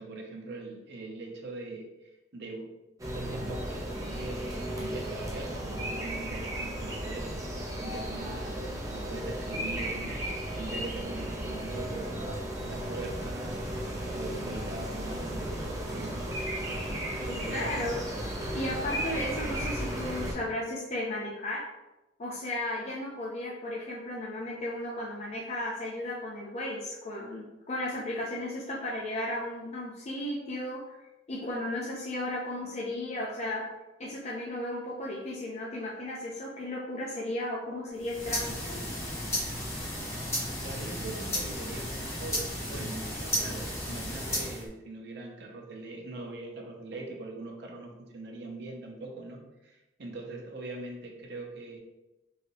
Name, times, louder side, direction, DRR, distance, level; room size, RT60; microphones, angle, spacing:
voice 1, 0.0-2.7 3.1-7.3 7.8-10.2 10.5-13.6 14.1-16.3 17.3-17.9 40.6-51.8, right 2 dB, 65° right, 1 dB, 0.6 m, -41 dB
sound 1, 3.0-20.3, right 1 dB, 20° right, 0.6 m, -35 dB
voice 2, 17.2-18.0 18.5-21.6 22.2-30.8 31.3-33.6 34.0-38.6, left 1 dB, 35° left, -4 dB, 0.5 m, -35 dB
sound 2, 38.0-44.7, left 1 dB, 15° left, 0.9 m, -34 dB
3.1 x 2.8 x 2.9 m, 0.99 s
head